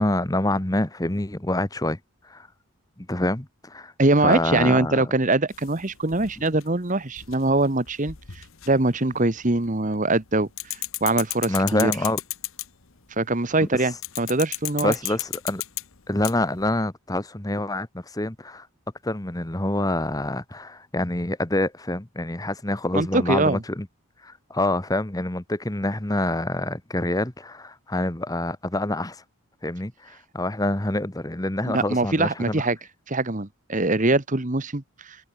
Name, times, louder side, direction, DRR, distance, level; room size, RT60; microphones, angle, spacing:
voice 1, 0.0-2.0 2.2-2.5 3.0-3.9 4.2-5.0 11.5-12.2 14.8-15.6 16.1-18.7 19.0-23.9 24.2-29.2 29.6-32.6, left 1 dB, 15° left, 1.1 m, -26 dB
voice 2, 4.0-11.9 13.2-14.9 22.9-23.6 31.6-32.8 33.1-35.2, right 2 dB, 35° right, 1.3 m, -23 dB
sound 1, 5.5-9.7 9.9-12.9 14.0-16.7, left 16 dB, 65° left, 1.4 m, -34 dB
head